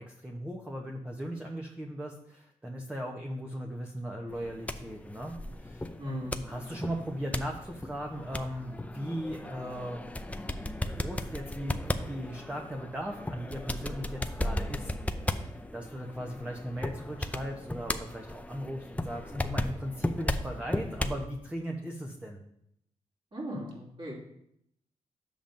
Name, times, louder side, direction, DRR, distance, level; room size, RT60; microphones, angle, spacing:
voice 1, 0.0-5.9 6.4-10.1 11.0-14.9 15.4-15.5 15.7-22.4, equal, 10° right, 1 dB, 0.9 m, -38 dB
sound 1, 4.3-21.3, left 1 dB, 10° left, 0.5 m, -36 dB
voice 2, 6.0-6.4 16.3-16.5 19.3-19.6 23.3-24.1, equal, 40° right, -4 dB, 2.8 m, -38 dB
8.7 x 7.0 x 2.6 m, 0.74 s
cardioid pair, 65°, 13 cm